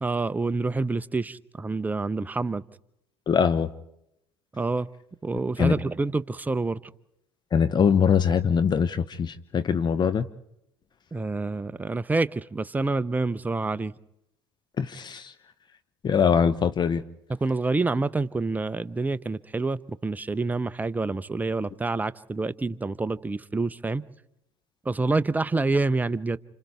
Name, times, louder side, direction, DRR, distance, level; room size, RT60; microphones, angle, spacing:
voice 1, 0.0-2.6 4.5-4.9 5.2-6.8 11.1-13.9 17.4-24.0 24.9-26.4, right 3 dB, 10° right, 14 dB, 0.7 m, -27 dB
voice 2, 3.3-3.7 5.6-5.8 7.5-10.2 14.8-15.3 16.0-17.0, left 7 dB, 30° left, 12 dB, 0.9 m, -22 dB
30.0 x 27.5 x 3.5 m, 0.82 s
figure-of-eight pair, 65°, 14 cm